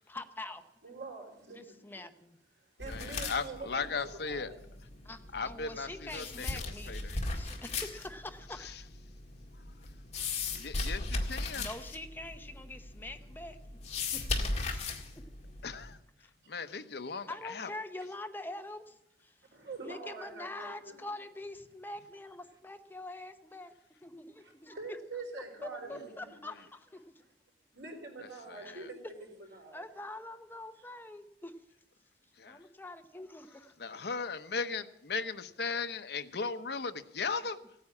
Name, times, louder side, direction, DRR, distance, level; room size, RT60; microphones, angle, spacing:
voice 1, 0.0-0.6 1.5-2.4 5.0-7.0 7.3-8.9 11.2-13.6 14.1-14.9 16.2-16.3 17.3-19.0 19.2-19.3 19.8-23.7 24.0-25.0 25.6-27.3 28.6-28.9 29.7-31.5 32.5-33.7, left 2 dB, 10° left, 7 dB, 0.9 m, -45 dB
voice 2, 0.8-1.9 2.8-4.6 17.1-17.3 19.5-21.1 24.4-26.4 27.7-29.9, right 3 dB, 85° right, 1 dB, 4.5 m, -45 dB
sound 1, 2.8-15.9, left 3 dB, 40° left, 1.9 m, -38 dB
voice 3, 2.9-4.5 5.3-6.5 6.9-7.2 10.6-11.7 15.6-16.0 16.5-17.7 32.4-32.6 33.8-37.6, left 4 dB, 65° left, 10 dB, 0.9 m, -37 dB
16.5 x 9.5 x 8.5 m, 0.79 s
head